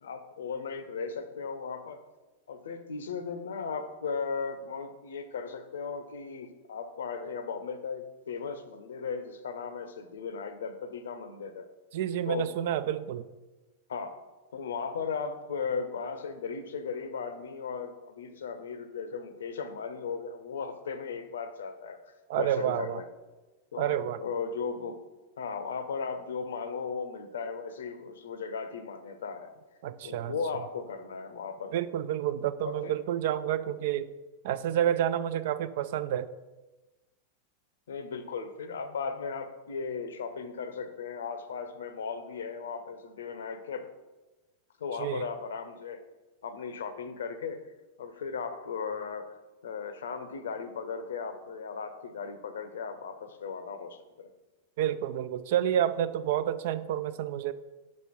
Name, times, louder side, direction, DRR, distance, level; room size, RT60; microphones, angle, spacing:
voice 1, 0.0-2.0 2.5-11.7 12.3-12.5 13.9-14.1 14.5-22.0 22.4-23.1 23.7-25.0 25.4-29.5 30.0-31.7 32.7-32.9 37.9-43.9 44.8-46.0 46.4-47.6 48.0-49.3 49.6-54.3, left 5 dB, 65° left, 10 dB, 0.6 m, -36 dB
voice 2, 11.9-13.2 22.3-23.0 23.8-24.2 29.8-30.3 31.7-34.1 34.4-36.3 45.0-45.3 54.8-57.5, right 10 dB, 50° right, 14 dB, 0.3 m, -29 dB
6.0 x 5.4 x 4.5 m, 1.1 s
figure-of-eight pair, 90°, 0 cm